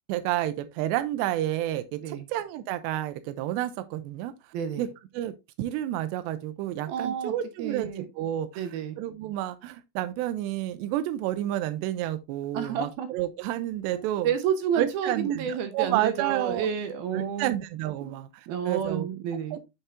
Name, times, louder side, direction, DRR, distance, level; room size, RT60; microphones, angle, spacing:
voice 1, 0.1-4.3 4.8-4.9 5.1-14.3 14.8-16.7 17.1-19.1 19.5-19.7, right 13 dB, 85° right, 2.8 m, -30 dB
voice 2, 4.5-4.9 6.9-7.3 7.6-8.1 8.6-9.0 12.5-13.1 13.9-17.5 18.0-18.2 18.5-19.6, right 8 dB, 70° right, 2.5 m, -30 dB
7.2 x 5.4 x 3.5 m
omnidirectional pair, 4.9 m